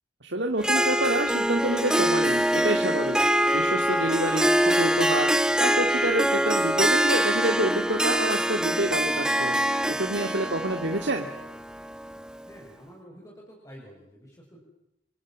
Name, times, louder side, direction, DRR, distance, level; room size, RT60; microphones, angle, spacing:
voice 1, 0.2-9.6 9.9-11.3, right 1 dB, 70° right, 3 dB, 2.3 m, -28 dB
Harp, 0.6-12.4, equal, 5° right, 1.4 m, -24 dB
voice 2, 12.4-14.6, equal, 20° left, -2 dB, 6.2 m, -49 dB
28.5 x 25.5 x 7.5 m, 0.85 s
head